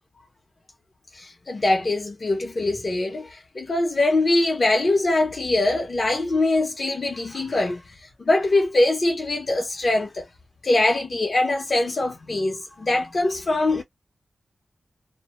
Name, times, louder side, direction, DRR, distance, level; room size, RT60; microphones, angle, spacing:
voice 1, 1.1-10.3 10.6-13.8, left 2 dB, 60° left, 0.7 m, -23 dB
2.1 x 2.1 x 2.9 m
cardioid pair, 50°, 0 cm